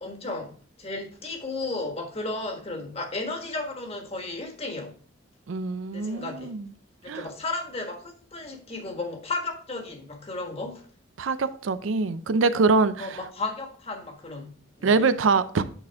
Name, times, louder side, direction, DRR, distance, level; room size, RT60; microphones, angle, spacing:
voice 1, 0.0-4.9 5.9-6.5 7.0-10.9 13.0-15.1, left 3 dB, 30° left, 3 dB, 1.4 m, -34 dB
voice 2, 5.5-6.7 7.1-7.2 11.2-13.2 14.8-15.6, right 4 dB, 80° right, 13 dB, 0.5 m, -24 dB
9.0 x 4.3 x 3.5 m, 0.43 s
head